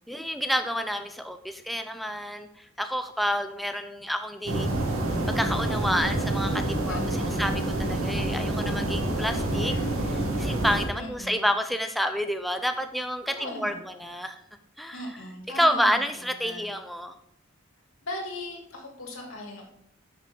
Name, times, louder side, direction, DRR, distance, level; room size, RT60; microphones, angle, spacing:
voice 1, 0.1-4.7 5.3-7.0 7.4-9.7 10.1-13.7 14.0-14.4 14.8-15.0 15.5-17.1, equal, ahead, 7 dB, 0.4 m, -29 dB
sound 1, 4.5-10.9, right 1 dB, 85° right, 2.2 m, -27 dB
voice 2, 6.9-7.4 9.3-10.0 10.9-11.5 13.3-14.1 14.9-16.7 18.0-19.7, left 1 dB, 90° left, 0 dB, 2.7 m, -39 dB
10.0 x 6.1 x 3.8 m, 0.76 s
head